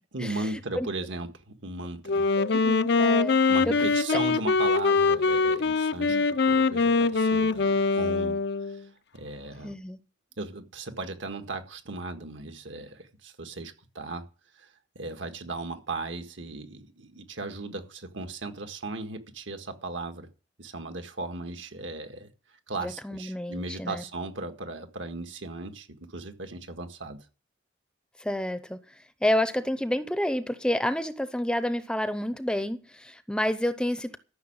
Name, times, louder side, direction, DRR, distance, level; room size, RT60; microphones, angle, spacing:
voice 1, 0.1-2.2 3.5-6.2 6.5-9.7 10.4-14.2 14.6-14.7 14.9-20.3 20.6-22.3 22.7-27.2, right 3 dB, 70° right, 1.8 m, -37 dB
Wind instrument woodwind instrument, 2.1-8.8, left 4 dB, 60° left, 0.5 m, -23 dB
voice 2, 2.4-4.2 6.1-6.3 9.6-10.0 22.8-24.0 28.2-28.8 29.2-34.2, left 1 dB, 5° left, 0.7 m, -29 dB
13.5 x 6.5 x 8.8 m
head